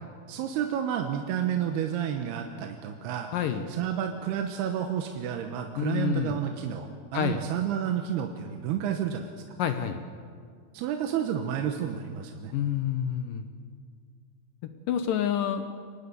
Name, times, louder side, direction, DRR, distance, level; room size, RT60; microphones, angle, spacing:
voice 1, 0.3-3.3 3.7-9.3 10.7-12.5, right 9 dB, 90° right, 4 dB, 3.1 m, -30 dB
voice 2, 3.3-3.6 5.8-6.4 7.1-7.4 9.6-10.0 12.5-13.5 14.9-15.6, left 9 dB, 70° left, 8 dB, 2.3 m, -28 dB
24.0 x 19.0 x 6.9 m, 2.1 s
omnidirectional pair, 4.5 m